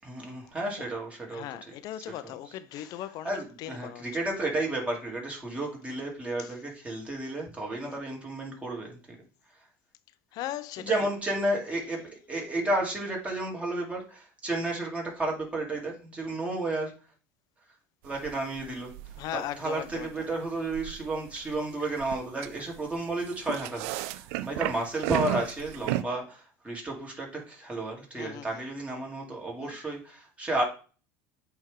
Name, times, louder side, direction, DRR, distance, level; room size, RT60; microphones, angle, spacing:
voice 1, 0.0-1.7 2.2-2.3 2.7-2.9 3.2-9.2 10.8-16.9 18.0-18.9 19.3-30.6, right 2 dB, 15° right, 2.9 m, -32 dB
voice 2, 1.3-4.0 6.4-6.5 7.8-8.0 10.3-11.1 19.2-20.3 28.2-28.6 29.6-29.8, left 12 dB, 60° left, 0.6 m, -38 dB
sound 1, 18.1-26.0, right 16 dB, 75° right, 0.4 m, -35 dB
8.4 x 3.5 x 3.7 m
supercardioid pair, 95°, 8 cm